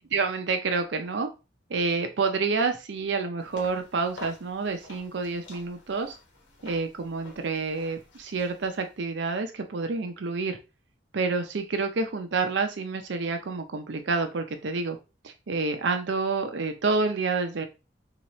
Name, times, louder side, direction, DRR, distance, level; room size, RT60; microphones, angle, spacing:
voice 1, 0.1-1.3 1.7-6.2 6.6-10.6 11.1-15.0 15.2-17.7, right 4 dB, 70° right, 6 dB, 0.5 m, -28 dB
sound 1, 3.4-9.0, left 2 dB, 85° left, 1.3 m, -49 dB
3.6 x 2.9 x 3.0 m, 0.29 s
head